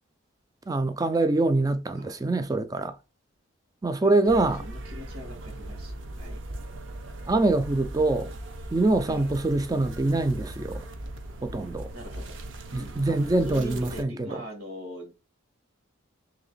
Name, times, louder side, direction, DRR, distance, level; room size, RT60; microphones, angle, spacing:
voice 1, 0.7-3.0 3.8-4.7 7.3-8.3 8.7-10.8 11.4-11.9 12.7-14.3, right 2 dB, 15° right, 0.3 m, -24 dB
voice 2, 4.0-6.4 9.1-9.3 11.9-12.4 12.7-13.2 13.5-15.1, equal, 85° right, 1.7 m, -42 dB
sound 1, 4.3-14.0, right 1 dB, 60° right, 0.6 m, -39 dB
3.1 x 2.9 x 3.9 m
head